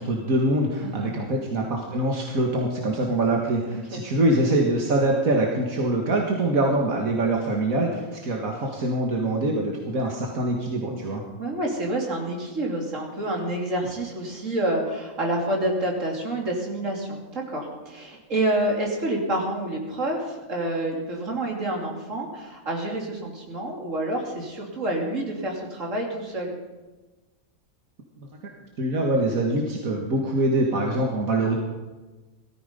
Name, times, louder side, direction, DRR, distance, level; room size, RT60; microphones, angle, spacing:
voice 1, 0.0-11.2 28.8-31.5, right 1 dB, 85° right, 0 dB, 2.2 m, -24 dB
voice 2, 0.8-1.1 3.7-4.0 11.4-26.5, right 1 dB, 65° right, -1 dB, 3.5 m, -28 dB
18.0 x 14.5 x 5.3 m, 1.2 s
omnidirectional pair, 1.4 m